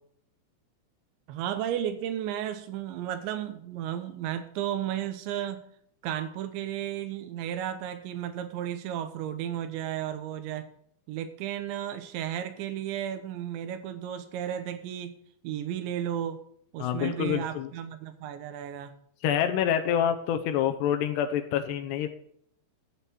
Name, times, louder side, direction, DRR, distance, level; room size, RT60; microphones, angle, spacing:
voice 1, 1.3-5.6 6.0-10.7 11.1-15.1 15.4-16.4 16.7-19.0, right 10 dB, 80° right, 9 dB, 3.2 m, -33 dB
voice 2, 16.8-17.7 19.2-22.1, left 9 dB, 75° left, 7 dB, 2.8 m, -27 dB
12.5 x 9.0 x 4.4 m, 0.66 s
omnidirectional pair, 5.3 m